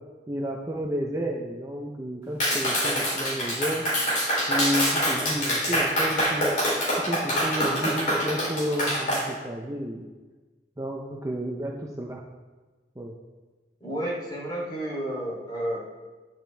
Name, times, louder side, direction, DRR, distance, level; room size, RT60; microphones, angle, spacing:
voice 1, 0.3-3.9 4.5-6.5 7.0-10.0 10.8-12.2 13.0-13.2, equal, 20° right, 0 dB, 0.7 m, -31 dB
Clapping, 2.4-9.2, equal, 45° left, 3.6 m, -25 dB
voice 2, 13.8-15.8, right 1 dB, 25° left, -5 dB, 3.1 m, -31 dB
10.0 x 9.1 x 3.4 m, 1.3 s
head